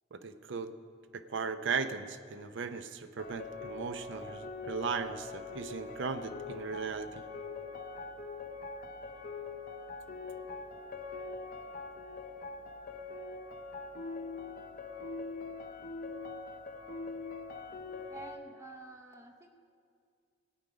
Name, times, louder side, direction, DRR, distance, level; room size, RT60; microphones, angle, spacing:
voice 1, 0.1-0.7 1.1-7.2, right 5 dB, 65° right, 10 dB, 0.6 m, -37 dB
sound 1, 3.2-18.4, left 3 dB, 45° left, 0.7 m, -43 dB
voice 2, 18.1-19.5, right 2 dB, 15° right, 3 dB, 0.6 m, -49 dB
17.5 x 9.2 x 5.0 m, 2.2 s
head